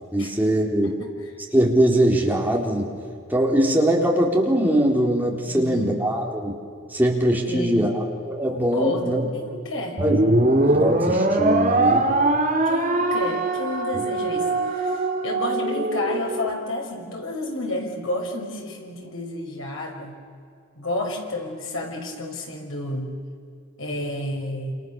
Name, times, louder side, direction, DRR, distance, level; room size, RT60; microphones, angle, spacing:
voice 1, 0.1-1.0 1.5-2.9 3.3-6.5 6.9-9.2 10.0-12.1 13.9-14.0, right 1 dB, 10° right, -1 dB, 4.0 m, -22 dB
voice 2, 5.5-6.0 7.4-7.9 8.5-10.0 12.7-20.2 20.8-23.1 23.8-24.7, left 1 dB, 75° left, 0 dB, 5.9 m, -31 dB
sound 1, 10.0-16.5, right 2 dB, 40° right, 2.7 m, -22 dB
28.0 x 28.0 x 7.1 m, 2.3 s
head